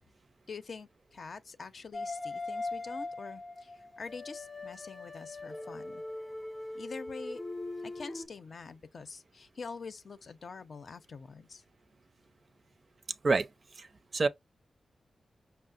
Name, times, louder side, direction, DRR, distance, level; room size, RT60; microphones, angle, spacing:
voice 1, 0.5-6.0 6.7-7.4 7.8-11.6, left 4 dB, 60° left, 0.6 m, -45 dB
sound 1, 1.9-8.3, left 2 dB, 15° left, 0.5 m, -40 dB
voice 2, 13.2-14.3, right 3 dB, 50° right, 0.5 m, -29 dB
5.5 x 2.0 x 2.4 m
cardioid pair, 80°, 0 cm